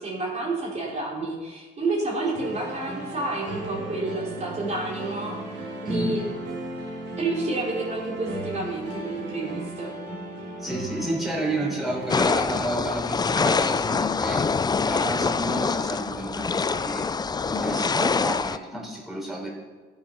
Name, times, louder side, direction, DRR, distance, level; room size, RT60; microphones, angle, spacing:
voice 1, 0.0-6.3 7.2-9.9, right 2 dB, 35° right, -5 dB, 3.5 m, -30 dB
sound 1, 2.3-12.6, right 2 dB, 65° right, 3.5 m, -35 dB
voice 2, 5.8-6.2 10.6-14.4 14.8-17.0 17.5-19.5, right 1 dB, ahead, -4 dB, 4.1 m, -30 dB
sound 2, 12.1-18.6, left 5 dB, 20° left, 0.4 m, -25 dB
13.0 x 7.7 x 5.8 m, 1.4 s
cardioid pair, 90°, 20 cm